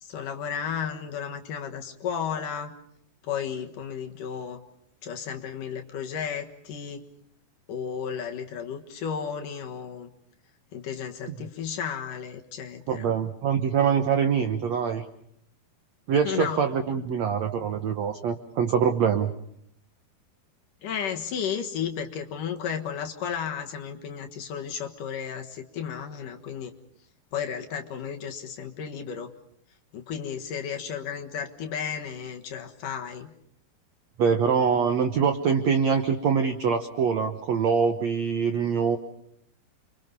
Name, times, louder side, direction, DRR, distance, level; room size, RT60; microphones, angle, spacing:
voice 1, 0.0-2.7 3.2-4.6 5.0-7.0 7.7-10.1 10.7-13.1 16.2-16.6 20.8-26.7 27.3-29.3 29.9-33.3, left 7 dB, 60° left, 4 dB, 2.7 m, -33 dB
voice 2, 12.9-15.0 16.1-19.3 34.2-39.0, right 6 dB, 75° right, 7 dB, 1.6 m, -24 dB
30.0 x 24.5 x 5.5 m, 0.70 s
omnidirectional pair, 4.7 m